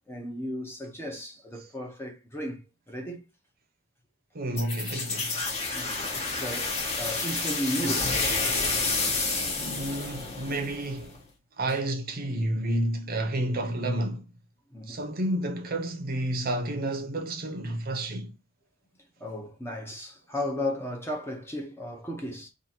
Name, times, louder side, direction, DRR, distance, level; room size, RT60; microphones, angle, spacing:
voice 1, 0.1-2.6 2.9-3.2 5.7-9.6 11.7-11.8 14.7-15.0 19.2-22.5, left 1 dB, 10° left, 0.7 m, -35 dB
voice 2, 4.3-5.4 9.1-11.2 11.6-14.2 14.9-18.4, right 1 dB, 45° right, 0.7 m, -30 dB
sound 1, 4.6-11.2, left 3 dB, 30° left, 1.1 m, -29 dB
2.9 x 2.6 x 4.0 m
head